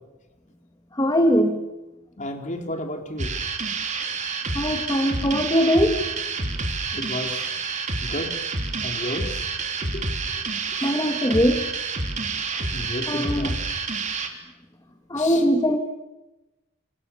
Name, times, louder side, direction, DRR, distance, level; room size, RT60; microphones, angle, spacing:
voice 1, 0.9-1.6 4.5-6.0 10.8-11.6 13.1-13.5 15.1-15.8, equal, 20° left, 5 dB, 2.0 m, -21 dB
voice 2, 2.2-3.3 6.9-7.6 8.0-8.4 8.8-9.4 9.9-10.1 10.3-10.4 10.7-10.9 12.6-13.6 15.1-15.4, left 1 dB, 35° left, 4 dB, 3.8 m, -32 dB
sound 1, 3.2-14.3, right 4 dB, 35° right, 3.1 m, -28 dB
29.0 x 28.0 x 7.3 m, 1.0 s
head